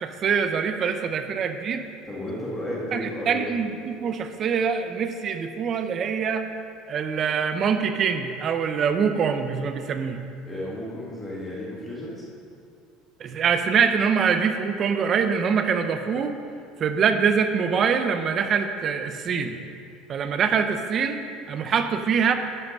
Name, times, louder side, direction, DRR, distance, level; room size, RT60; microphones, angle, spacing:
voice 1, 0.0-1.8 2.9-6.5 6.9-10.2 13.2-16.4 16.8-19.6 20.1-22.3, right 6 dB, 30° right, 8 dB, 0.6 m, -24 dB
voice 2, 2.1-3.4 10.5-12.2, left 1 dB, 15° left, -5 dB, 1.8 m, -33 dB
12.0 x 5.8 x 5.4 m, 2.4 s
cardioid pair, 160°, 0 cm